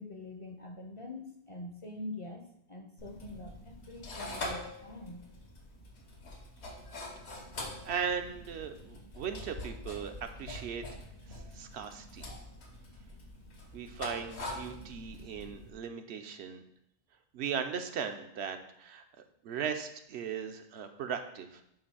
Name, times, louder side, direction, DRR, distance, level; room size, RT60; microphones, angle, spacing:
voice 1, 0.0-5.3, left 2 dB, 40° left, 2 dB, 0.5 m, -45 dB
sound 1, 3.0-15.7, left 1 dB, 80° left, 1.4 m, -44 dB
voice 2, 7.8-10.9 11.3-12.3 13.7-16.6 17.3-19.0 19.4-21.6, right 7 dB, 80° right, 6 dB, 0.9 m, -38 dB
7.6 x 2.5 x 5.5 m, 0.75 s
omnidirectional pair, 1.1 m